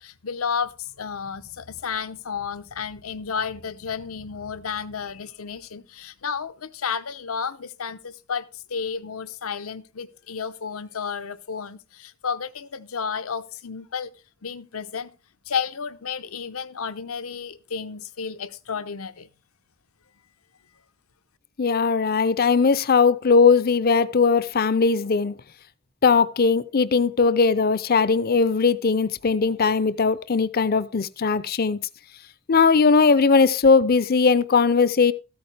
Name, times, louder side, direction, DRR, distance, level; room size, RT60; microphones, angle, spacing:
voice 1, 0.0-14.1 14.4-15.1 15.5-19.3, left 6 dB, 85° left, 0.8 m, -32 dB
voice 2, 21.6-25.4 26.0-31.8 32.5-35.1, left 5 dB, 45° left, 0.5 m, -19 dB
13.5 x 8.8 x 3.3 m
head